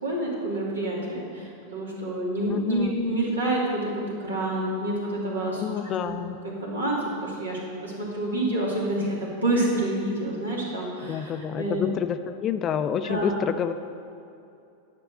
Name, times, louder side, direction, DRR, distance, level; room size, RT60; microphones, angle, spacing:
voice 1, 0.0-6.1 6.4-11.9 13.0-13.4, right 1 dB, 75° right, -4 dB, 2.5 m, -28 dB
voice 2, 2.5-2.9 5.6-6.4 11.1-13.7, left 8 dB, 30° left, 10 dB, 0.4 m, -28 dB
11.0 x 6.1 x 6.5 m, 2.6 s
figure-of-eight pair, 90°, 0 cm